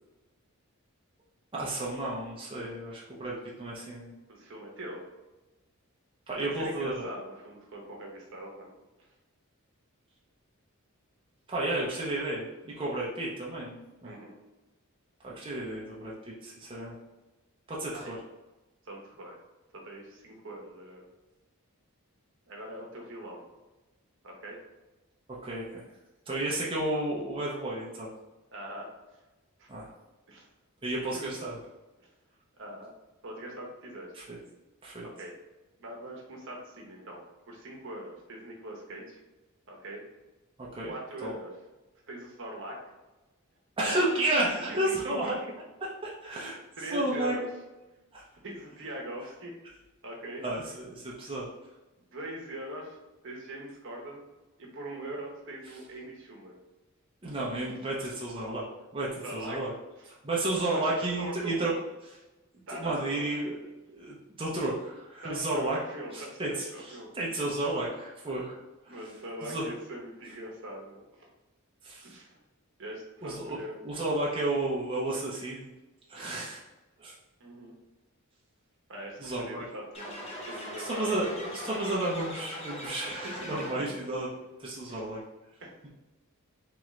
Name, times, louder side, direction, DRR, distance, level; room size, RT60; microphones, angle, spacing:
voice 1, 1.5-4.1 6.3-7.1 11.5-14.1 15.2-17.0 17.7-18.2 25.4-25.8 26.3-28.1 29.7-29.9 30.8-31.6 34.1-34.4 34.8-35.1 40.6-40.9 41.2-41.3 43.8-45.4 46.0-46.6 46.9-47.4 48.1-48.2 50.4-51.5 57.2-58.7 58.9-59.7 60.2-61.7 62.0-62.2 62.7-63.5 63.9-65.8 66.1-66.7 67.1-68.6 68.9-69.0 69.4-69.6 71.8-72.1 73.2-73.6 73.8-75.7 76.1-76.6 77.0-77.1 79.2-79.6 80.8-84.3 84.6-85.2, right 2 dB, 25° right, -6 dB, 0.6 m, -32 dB
voice 2, 4.3-5.0 6.4-8.7 14.0-14.3 17.9-18.1 18.8-19.4 19.8-21.0 22.5-23.4 24.2-24.6 28.5-28.9 29.6-29.7 30.3-30.5 31.1-31.3 32.6-32.9 33.2-34.1 35.2-35.3 35.8-39.2 39.7-40.0 40.9-41.5 42.1-42.8 44.7-45.5 46.3-46.4 46.8-47.5 48.4-49.6 50.0-50.4 52.1-53.0 53.2-54.2 54.6-56.5 59.2-59.6 60.0-60.1 60.7-61.7 62.7-63.2 65.2-67.1 67.5-67.7 68.9-71.3 72.0-72.4 72.8-73.8 77.4-77.7 78.9-81.1 83.1-83.5 84.9-85.0 85.6-85.9, right 1 dB, 60° right, -1 dB, 0.9 m, -42 dB
sound 1, 79.9-84.1, equal, 30° left, 0.7 m, -40 dB
3.6 x 3.0 x 3.1 m, 1.1 s
head